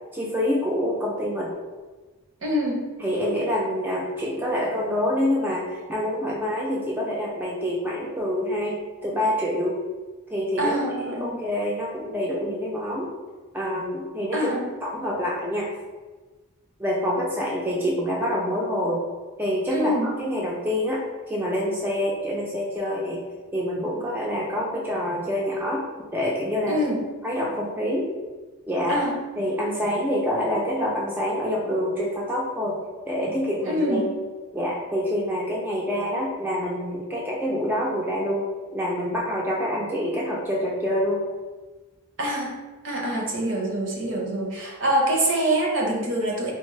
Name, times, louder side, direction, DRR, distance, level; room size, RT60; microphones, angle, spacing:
voice 1, 0.1-1.5 3.0-9.8 10.3-10.8 11.0-13.1 13.5-14.5 14.8-15.7 16.8-19.0 19.4-23.2 23.5-25.9 26.1-26.8 27.2-28.1 28.7-29.0 29.4-32.8 33.1-34.0 34.5-38.5 38.7-41.2, equal, 10° right, -4 dB, 0.4 m, -26 dB
voice 2, 2.4-2.9 10.6-11.4 14.3-14.6 19.7-20.1 26.7-27.0 28.9-29.1 33.6-34.1 42.2-42.5 42.8-46.5, right 1 dB, 60° right, 0 dB, 0.7 m, -25 dB
4.2 x 2.0 x 3.1 m, 1.3 s
head